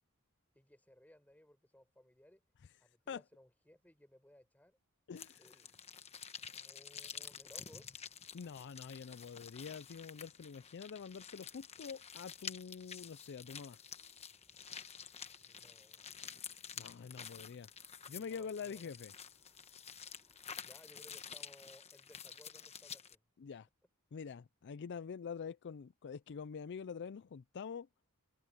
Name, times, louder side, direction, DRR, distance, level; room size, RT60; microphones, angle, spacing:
voice 1, 0.5-2.4 2.8-4.8 5.4-5.7 6.4-8.0 15.4-16.2 18.1-18.8 20.6-23.2, left 1 dB, 5° left, 4.5 m, -62 dB
voice 2, 5.1-5.5 8.3-13.8 16.7-17.7 18.1-19.1 23.4-23.7 24.1-27.9, left 6 dB, 50° left, 0.4 m, -46 dB
sound 1, 5.2-23.2, left 7 dB, 30° left, 1.1 m, -50 dB
sound 2, 6.8-20.7, right 1 dB, 15° right, 5.4 m, -79 dB
head